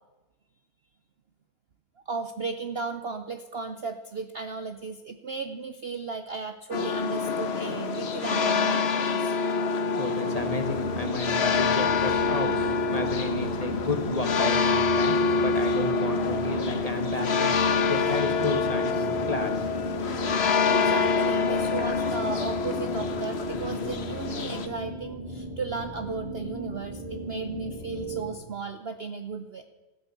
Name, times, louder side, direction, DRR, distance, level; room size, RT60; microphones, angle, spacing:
voice 1, 2.1-9.3 20.7-29.6, right 4 dB, 50° right, 8 dB, 0.8 m, -35 dB
sound 1, 6.7-24.7, left 4 dB, 45° left, 1.3 m, -26 dB
voice 2, 9.4-19.9, left 2 dB, 25° left, 6 dB, 1.6 m, -32 dB
sound 2, 10.3-28.3, right 1 dB, 25° right, 2.0 m, -38 dB
15.0 x 10.5 x 8.3 m, 1.2 s
omnidirectional pair, 1.7 m